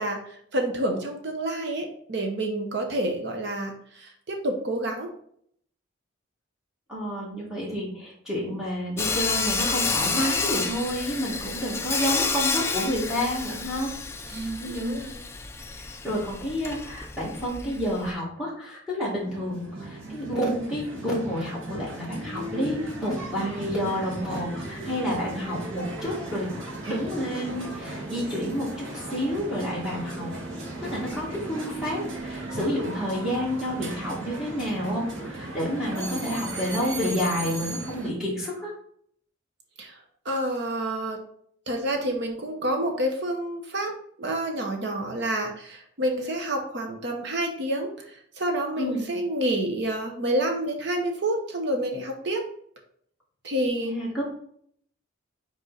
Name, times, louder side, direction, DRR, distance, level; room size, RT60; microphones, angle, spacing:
voice 1, 0.0-5.1 14.3-15.2 39.8-40.0 40.2-41.2 41.7-43.9 44.2-52.4 53.4-53.9, right 1 dB, 55° right, 3 dB, 0.9 m, -28 dB
voice 2, 6.9-13.9 14.6-15.0 15.8-26.5 26.9-30.3 30.8-38.7 48.8-49.1 53.8-54.2, equal, 5° right, -7 dB, 1.9 m, -29 dB
Sawing, 9.0-18.1, left 4 dB, 10° left, 0.4 m, -30 dB
sound 1, 19.0-38.1, right 1 dB, 70° right, 1.6 m, -36 dB
5.3 x 4.7 x 3.9 m, 0.64 s
head